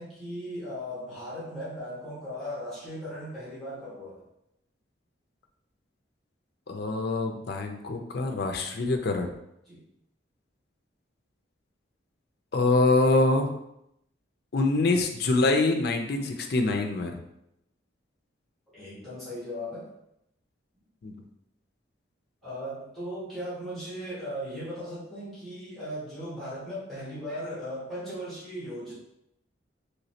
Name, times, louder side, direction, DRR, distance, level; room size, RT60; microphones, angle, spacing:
voice 1, 0.0-4.3 9.6-9.8 18.7-19.9 22.4-29.0, equal, ahead, -11 dB, 1.4 m, -37 dB
voice 2, 6.7-9.3 12.5-13.5 14.5-17.2 21.0-21.2, left 2 dB, 55° left, 4 dB, 0.4 m, -25 dB
3.1 x 3.0 x 2.7 m, 0.80 s
head